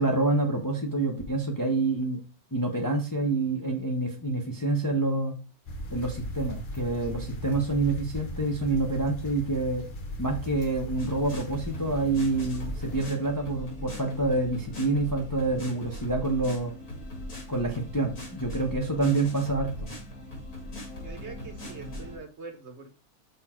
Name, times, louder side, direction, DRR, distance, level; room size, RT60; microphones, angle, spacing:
voice 1, 0.0-2.2 2.5-5.3 5.9-9.8 10.2-16.7 17.5-19.9, right 2 dB, 20° left, 1 dB, 0.7 m, -27 dB
sound 1, 5.7-13.1, equal, 40° left, 0.8 m, -38 dB
sound 2, 10.9-22.2, left 1 dB, 80° left, 2.8 m, -40 dB
voice 2, 21.0-22.9, right 4 dB, 50° right, 4 dB, 1.3 m, -43 dB
5.5 x 4.1 x 4.4 m, 0.34 s
omnidirectional pair, 1.6 m